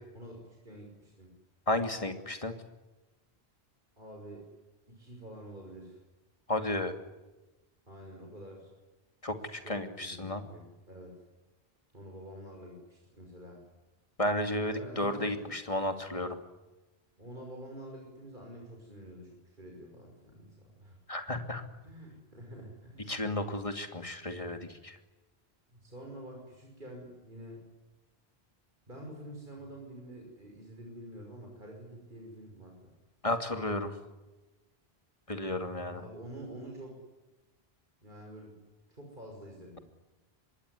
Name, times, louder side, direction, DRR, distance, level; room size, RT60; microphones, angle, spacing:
voice 1, 0.1-1.3 4.0-4.5 4.9-6.0 7.9-8.7 9.4-11.2 11.9-13.6 14.8-15.6 17.2-21.0 21.8-23.3 25.7-27.6 28.9-32.9 35.9-37.0 38.0-38.6 38.9-39.8, right 1 dB, 50° right, 0 dB, 6.1 m, -48 dB
voice 2, 1.7-2.5 6.5-6.9 9.2-10.4 14.2-16.4 21.1-21.6 23.1-25.0 33.2-33.9 35.3-36.0, left 1 dB, 35° left, 7 dB, 2.8 m, -33 dB
26.0 x 21.5 x 9.8 m, 1.1 s
omnidirectional pair, 1.0 m